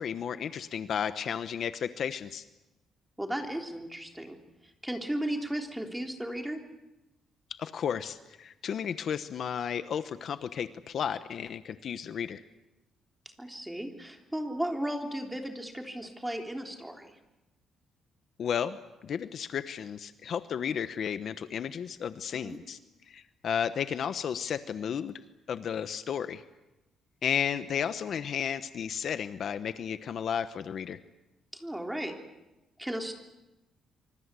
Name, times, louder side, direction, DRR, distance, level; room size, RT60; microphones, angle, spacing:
voice 1, 0.0-2.4 7.6-12.4 18.4-22.8 23.1-25.2 25.5-26.4 27.2-31.0, left 8 dB, 55° left, 11 dB, 1.0 m, -33 dB
voice 2, 3.2-4.4 4.8-6.6 13.4-17.2 22.4-22.6 31.5-32.2 32.8-33.2, right 1 dB, 5° right, 3 dB, 3.5 m, -35 dB
25.5 x 25.5 x 8.3 m, 1.0 s
cardioid pair, 135°, 0 cm